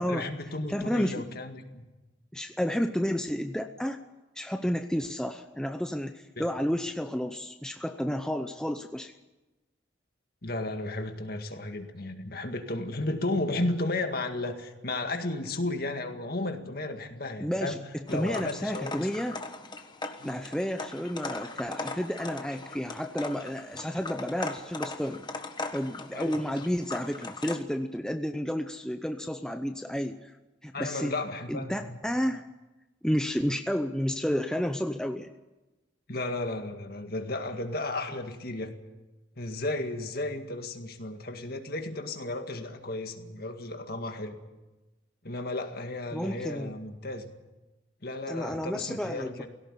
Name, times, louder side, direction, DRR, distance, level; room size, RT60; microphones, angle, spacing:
voice 1, 0.1-1.8 6.4-6.5 10.4-17.8 18.1-19.1 20.2-20.3 26.1-26.4 30.7-31.8 36.1-38.7 39.4-44.4 45.2-47.3 48.0-49.5, left 2 dB, 50° left, 6 dB, 2.0 m, -34 dB
voice 2, 0.7-1.2 2.3-4.0 4.4-9.1 17.4-19.4 20.2-25.2 25.7-30.3 30.6-31.2 31.5-32.5 33.0-35.3 46.1-46.7 48.3-49.5, equal, 5° left, 6 dB, 0.7 m, -31 dB
sound 1, 18.1-27.6, left 3 dB, 25° left, 1.3 m, -39 dB
18.0 x 17.0 x 9.9 m, 1.1 s
head